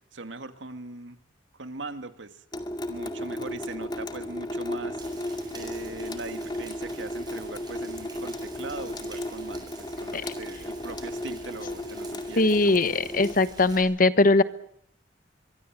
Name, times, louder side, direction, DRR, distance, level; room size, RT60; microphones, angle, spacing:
voice 1, 0.1-1.2 1.6-2.4 2.9-5.0 5.5-12.8, right 3 dB, 85° right, 9 dB, 2.0 m, -40 dB
Water tap faucet / Sink (filling or washing) / Drip, 2.5-13.3, left 1 dB, 25° left, 2.2 m, -35 dB
Rain, 5.0-13.8, right 3 dB, 25° right, 8.0 m, -48 dB
voice 2, 12.4-14.4, left 2 dB, 50° left, 14 dB, 1.2 m, -21 dB
24.0 x 23.5 x 7.5 m, 0.69 s
head